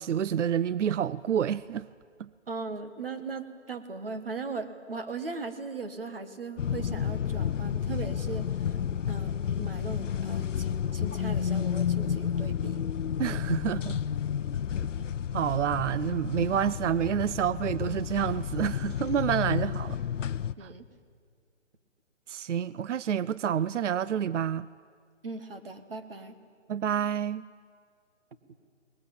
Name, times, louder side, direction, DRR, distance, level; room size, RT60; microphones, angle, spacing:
voice 1, 0.0-1.9 2.2-2.3 13.2-14.0 15.3-20.0 20.6-20.7 22.3-24.7 26.7-27.5, right 9 dB, 75° right, 0.5 m, -28 dB
voice 2, 2.5-8.5 9.1-12.8 20.6-20.8 25.2-26.3, right 4 dB, 50° right, 1.5 m, -38 dB
sound 1, 6.6-20.5, left 8 dB, 85° left, 0.7 m, -31 dB
20.5 x 19.5 x 8.7 m
hypercardioid pair, 180°, 36 cm